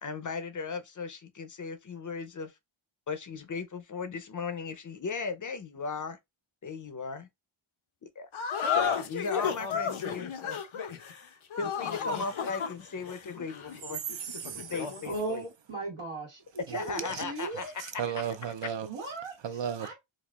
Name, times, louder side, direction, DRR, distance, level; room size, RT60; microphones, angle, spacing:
voice 1, 0.0-2.5 3.1-6.2 6.6-7.3 8.2-8.3 8.7-10.6 11.6-14.0 14.7-15.4 16.7-18.3, left 4 dB, 40° left, 0.6 m, -37 dB
sound 1, 8.3-15.1, left 7 dB, 75° left, 0.7 m, -33 dB
voice 2, 14.2-14.7 16.7-16.8 17.8-18.9 19.4-19.9, right 8 dB, 60° right, 0.6 m, -34 dB
voice 3, 15.0-17.7 18.8-19.4 19.8-19.9, right 3 dB, 80° right, 1.4 m, -37 dB
4.1 x 2.4 x 2.3 m
wide cardioid pair, 80°, 49 cm